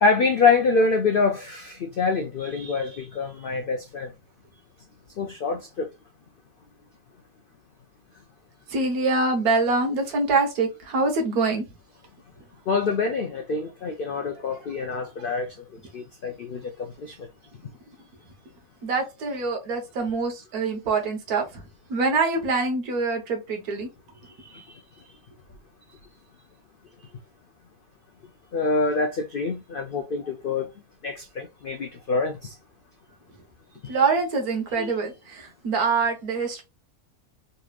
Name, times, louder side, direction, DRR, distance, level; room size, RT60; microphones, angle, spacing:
voice 1, 0.0-4.1 5.2-5.9 12.7-15.5 15.9-17.1 24.4-24.6 28.5-30.7 31.0-32.5 33.8-34.0 34.8-34.9, left 4 dB, 90° left, 0.4 m, -25 dB
voice 2, 8.7-11.6 18.8-21.4 21.9-23.9 33.9-36.6, right 3 dB, 75° right, 1.5 m, -24 dB
3.8 x 3.2 x 2.3 m
omnidirectional pair, 1.6 m